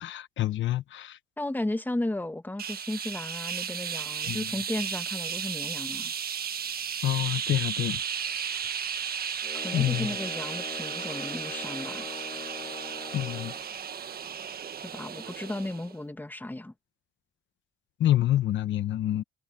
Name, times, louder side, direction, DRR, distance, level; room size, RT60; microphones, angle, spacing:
voice 1, 0.0-1.2 4.3-4.5 7.0-8.0 9.7-10.1 13.1-13.5 18.0-19.2, left 13 dB, 70° left, 1.0 m, -27 dB
voice 2, 1.4-6.1 9.5-12.1 14.8-16.7, left 1 dB, 10° left, 1.7 m, -34 dB
sound 1, 2.6-15.9, right 7 dB, 50° right, 1.6 m, -34 dB
sound 2, 9.4-13.7, left 5 dB, 30° left, 1.3 m, -42 dB
cardioid pair, 90°, 20 cm